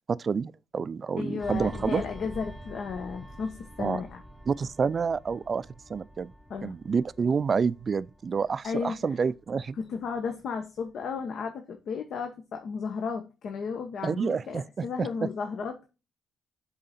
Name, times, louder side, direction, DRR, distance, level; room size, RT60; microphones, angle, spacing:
voice 1, 0.1-2.0 3.8-4.0 4.5-6.3 6.6-9.8 14.0-15.3, right 5 dB, 40° right, 0.3 m, -28 dB
voice 2, 1.2-4.2 6.5-6.7 8.6-9.0 9.8-15.9, left 5 dB, 65° left, 1.0 m, -34 dB
sound 1, 1.4-10.4 10.8-11.0, equal, ahead, 0.7 m, -47 dB
7.5 x 4.0 x 4.2 m
cardioid pair, 90°, 0 cm